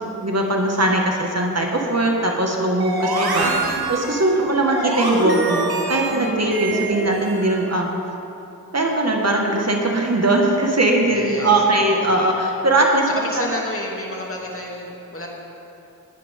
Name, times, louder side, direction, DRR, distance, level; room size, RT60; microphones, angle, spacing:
voice 1, 0.2-7.9 8.7-13.1, right 2 dB, 45° right, 0 dB, 1.9 m, -20 dB
sound 1, 2.8-7.7, right 3 dB, 85° right, 1.4 m, -25 dB
voice 2, 11.1-12.0 13.1-15.3, left 1 dB, 35° left, -2 dB, 2.8 m, -30 dB
20.0 x 9.8 x 3.8 m, 2.9 s
cardioid pair, 50°, 36 cm